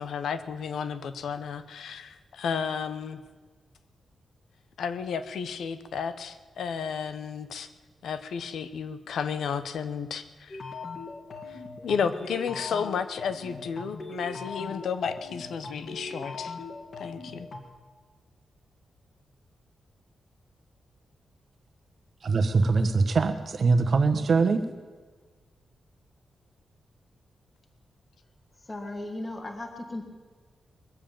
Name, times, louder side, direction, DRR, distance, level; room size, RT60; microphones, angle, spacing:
voice 1, 0.0-3.2 4.8-7.7 8.0-10.6 11.8-16.5 17.0-17.5, left 6 dB, 90° left, 11 dB, 0.9 m, -32 dB
sound 1, 10.5-17.6, left 3 dB, 50° left, 2.0 m, -40 dB
voice 2, 22.2-24.6, right 4 dB, 45° right, 7 dB, 1.2 m, -23 dB
voice 3, 28.6-30.0, left 2 dB, 20° left, 4 dB, 1.6 m, -36 dB
21.0 x 7.6 x 8.9 m, 1.4 s
wide cardioid pair, 165°, 0 cm